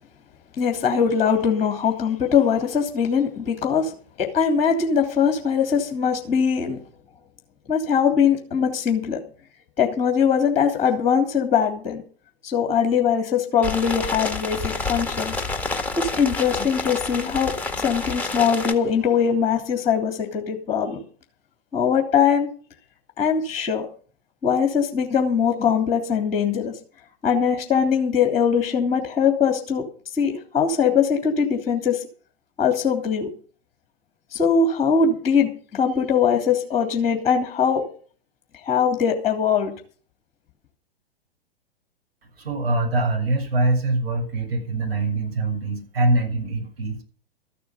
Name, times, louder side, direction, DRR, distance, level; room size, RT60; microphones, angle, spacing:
voice 1, 0.6-3.9 4.2-6.8 7.7-9.2 9.8-12.0 12.4-15.3 16.0-21.0 21.7-22.5 23.2-23.9 24.4-26.7 27.2-29.8 30.1-32.0 32.6-33.3 34.3-37.8 38.6-39.7, left 7 dB, 20° left, 4 dB, 3.1 m, -21 dB
sound 1, 13.6-18.7, left 3 dB, 5° left, 1.8 m, -28 dB
voice 2, 42.4-47.0, right 2 dB, 65° right, 0 dB, 6.8 m, -23 dB
14.0 x 9.4 x 6.7 m, 0.41 s
figure-of-eight pair, 105°, 31 cm